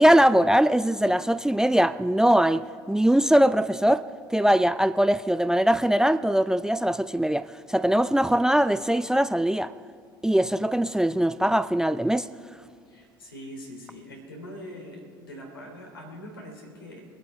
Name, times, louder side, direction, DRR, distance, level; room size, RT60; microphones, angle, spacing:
voice 1, 0.0-4.0 4.3-9.7 10.2-12.3, right 1 dB, 5° right, 0.4 m, -21 dB
voice 2, 12.9-17.0, equal, 85° left, 3.0 m, -42 dB
24.0 x 8.2 x 4.9 m
figure-of-eight pair, 65°, 12 cm